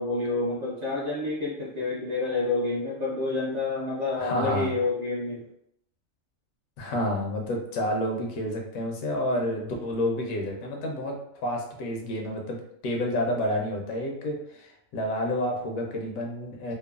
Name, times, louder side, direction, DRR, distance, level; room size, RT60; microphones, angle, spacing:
voice 1, 0.0-5.5, left 3 dB, 50° right, -6 dB, 0.5 m, -28 dB
voice 2, 4.2-4.7 6.8-12.6 12.8-16.7, left 1 dB, 85° left, 1 dB, 1.1 m, -29 dB
3.0 x 2.0 x 2.3 m, 0.74 s
omnidirectional pair, 1.4 m